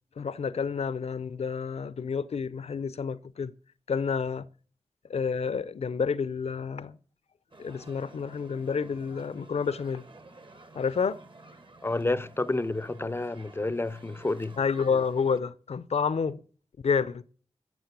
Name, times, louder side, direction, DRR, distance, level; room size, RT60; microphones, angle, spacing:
voice 1, 0.2-3.5 3.9-4.5 5.1-6.9 7.6-10.0 10.7-11.2 14.6-16.4 16.8-17.2, left 6 dB, 70° left, 0.6 m, -29 dB
sound 1, 7.5-15.4, right 2 dB, 45° right, 1.5 m, -52 dB
voice 2, 11.8-14.6, left 2 dB, 20° left, 0.5 m, -30 dB
10.5 x 7.4 x 8.1 m
wide cardioid pair, 85°, 11 cm